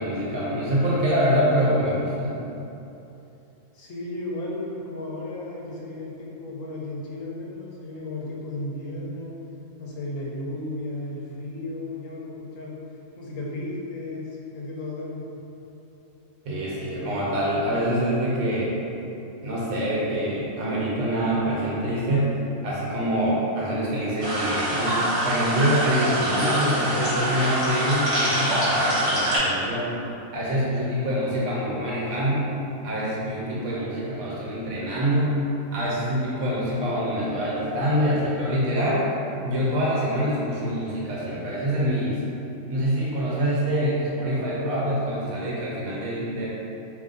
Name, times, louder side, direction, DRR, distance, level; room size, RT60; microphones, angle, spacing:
voice 1, 0.0-2.4 16.4-18.7 19.4-22.3 22.6-29.9 30.3-32.5 32.8-35.3 35.7-39.1 39.4-42.2 42.7-46.5, equal, 90° right, -6 dB, 1.2 m, -25 dB
voice 2, 3.7-9.4 9.8-12.8 13.2-15.4, left 2 dB, 70° left, -4 dB, 1.1 m, -34 dB
sound 1, 24.2-29.4, right 1 dB, 55° right, 1.5 m, -25 dB
5.1 x 2.9 x 2.5 m, 2.9 s
omnidirectional pair, 1.4 m